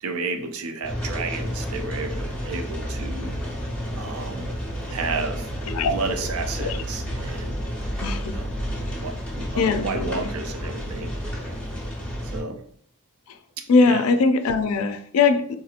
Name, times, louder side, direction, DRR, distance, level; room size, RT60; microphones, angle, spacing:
voice 1, 0.0-3.4 4.0-4.6 4.9-5.5 5.9-7.6 8.3-8.5 9.0-11.1 12.2-12.6 13.6-14.0, right 4 dB, 75° right, 0.5 m, -32 dB
sound 1, 0.8-12.4, equal, 5° left, 0.8 m, -31 dB
voice 2, 8.0-8.4 9.6-10.3 13.3-13.4 13.7-15.5, left 4 dB, 75° left, 0.3 m, -21 dB
3.9 x 2.8 x 2.4 m
head